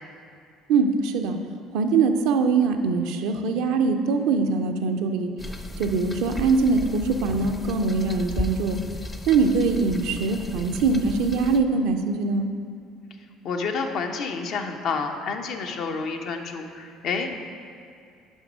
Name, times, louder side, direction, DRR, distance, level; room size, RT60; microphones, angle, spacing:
voice 1, 0.7-1.4 1.7-5.3 5.8-8.8 9.3-12.5, right 4 dB, 70° right, 5 dB, 0.5 m, -22 dB
sound 1, 5.4-11.6, left 1 dB, 20° left, 0.6 m, -35 dB
voice 2, 13.4-17.4, left 4 dB, 60° left, 4 dB, 0.7 m, -29 dB
6.3 x 5.3 x 5.1 m, 2.4 s
hypercardioid pair, 60°, 0 cm